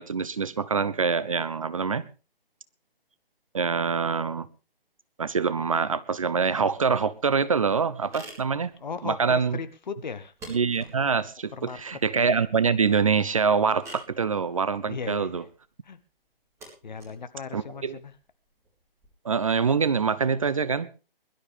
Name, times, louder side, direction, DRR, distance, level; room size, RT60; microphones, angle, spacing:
voice 1, 0.0-2.0 3.5-4.5 5.2-8.7 9.0-9.6 10.5-15.4 17.5-18.0 19.2-20.9, right 5 dB, 35° right, 16 dB, 0.7 m, -25 dB
sound 1, 6.8-19.1, right 1 dB, 10° right, 4.9 m, -51 dB
voice 2, 8.8-10.3 11.5-11.8 14.9-15.4 15.8-16.0 16.8-18.1, left 5 dB, 50° left, 11 dB, 1.6 m, -37 dB
22.0 x 12.5 x 3.5 m, 0.33 s
figure-of-eight pair, 145°, 30 cm